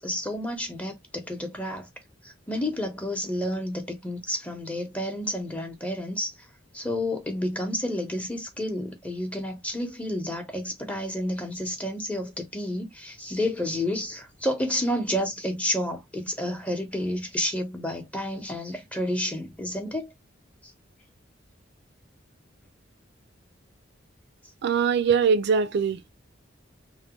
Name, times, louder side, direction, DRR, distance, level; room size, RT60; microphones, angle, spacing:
voice 1, 0.0-1.9 2.2-6.3 6.7-20.1 20.6-20.7, left 1 dB, 10° left, 0.8 m, -30 dB
voice 2, 24.6-26.1, right 6 dB, 60° right, 0.4 m, -22 dB
3.2 x 2.2 x 2.9 m
head